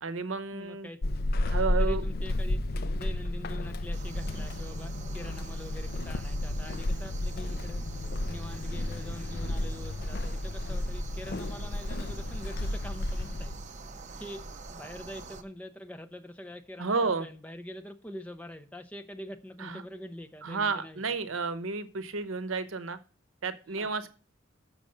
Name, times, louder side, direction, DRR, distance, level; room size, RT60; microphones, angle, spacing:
voice 1, 0.0-0.9 1.4-2.0 16.8-17.3 19.6-19.8 20.4-23.0 23.4-24.1, right 4 dB, 80° right, 0.8 m, -31 dB
voice 2, 0.5-1.0 1.8-2.6 2.9-7.8 8.3-13.6 14.1-21.0 23.7-23.9, equal, 5° left, 0.7 m, -44 dB
Walk footsteps / Squeak, 1.0-13.7, left 1 dB, 50° left, 0.5 m, -32 dB
sound 1, 3.9-15.4, right 3 dB, 35° right, 0.7 m, -46 dB
6.8 x 6.3 x 6.5 m
head